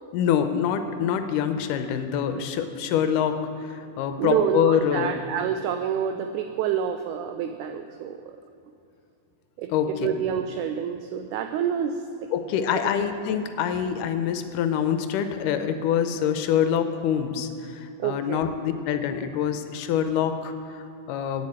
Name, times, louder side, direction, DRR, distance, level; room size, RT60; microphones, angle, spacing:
voice 1, 0.1-5.2 9.7-9.9 12.3-21.5, left 8 dB, 85° left, 8 dB, 2.2 m, -25 dB
voice 2, 4.2-8.4 9.6-12.0 12.7-12.8 18.0-18.4, right 8 dB, 80° right, 7 dB, 1.8 m, -28 dB
8.6 x 7.6 x 8.7 m, 2.7 s
omnidirectional pair, 3.8 m